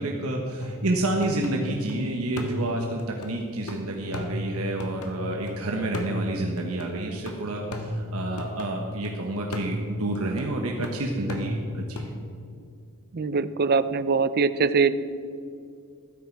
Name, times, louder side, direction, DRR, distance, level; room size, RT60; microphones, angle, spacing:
voice 1, 0.0-12.1, right 2 dB, 75° right, 1 dB, 1.3 m, -29 dB
sound 1, 0.6-1.9 2.4-5.5 5.9-9.1 9.5-12.2, left 1 dB, 90° left, 1.6 m, -35 dB
voice 2, 13.1-14.9, right 5 dB, 45° right, 14 dB, 0.5 m, -22 dB
15.0 x 13.0 x 4.7 m, 2.4 s
head